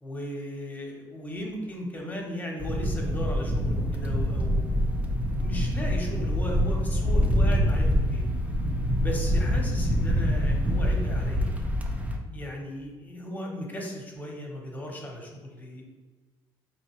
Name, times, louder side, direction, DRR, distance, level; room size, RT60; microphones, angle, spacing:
voice 1, 0.0-4.7 5.2-8.2 9.0-11.5 12.3-16.0, left 1 dB, 15° left, 0 dB, 0.8 m, -36 dB
sound 1, 2.6-12.2, equal, 15° right, 0.5 m, -25 dB
3.9 x 3.0 x 3.0 m, 1.3 s
cardioid pair, 110°, 10 cm